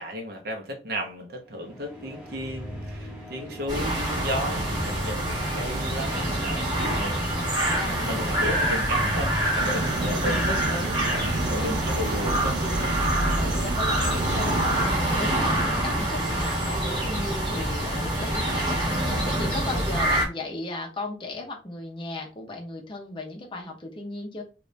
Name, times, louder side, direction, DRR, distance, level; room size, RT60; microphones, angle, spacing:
voice 1, 0.0-7.2 7.8-12.9, equal, 60° right, 0.9 m, -34 dB
sound 1, 1.5-13.3, equal, 10° right, 1.2 m, -40 dB
sound 2, 3.7-20.3, right 1 dB, 25° right, 1.4 m, -26 dB
voice 2, 7.1-8.3 8.7-9.2 10.0-10.3 11.5-11.9 13.1-24.4, left 2 dB, 30° left, 0.8 m, -36 dB
sound 3, 9.6-14.9, right 4 dB, 75° right, 0.4 m, -32 dB
2.6 x 2.5 x 3.2 m
head